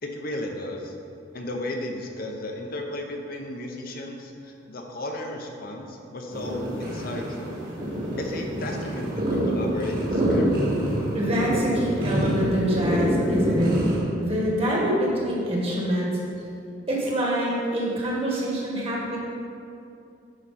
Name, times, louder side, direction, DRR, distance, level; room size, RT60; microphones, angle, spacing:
voice 1, 0.0-0.9 1.3-7.6 8.2-10.5, left 1 dB, 50° left, 2 dB, 0.7 m, -34 dB
sound 1, 6.3-14.0, right 1 dB, 50° right, 2.0 m, -26 dB
voice 2, 11.1-13.8 14.2-16.1 16.9-19.2, equal, 30° right, -3 dB, 1.6 m, -25 dB
10.0 x 5.0 x 4.2 m, 2.6 s
head